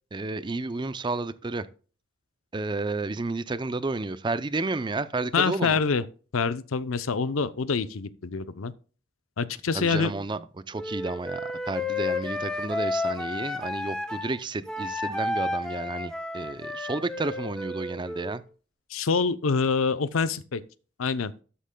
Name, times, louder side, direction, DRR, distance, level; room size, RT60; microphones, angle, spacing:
voice 1, 0.1-1.7 2.5-5.8 9.7-10.4 10.7-18.4, right 3 dB, 25° right, 0.5 m, -31 dB
voice 2, 5.3-6.0 6.3-8.7 9.4-10.1 18.9-20.6 21.0-21.3, left 5 dB, 90° left, 0.6 m, -26 dB
Wind instrument woodwind instrument, 10.7-14.3 14.6-18.4, left 2 dB, 5° left, 0.9 m, -32 dB
13.0 x 8.4 x 2.2 m
head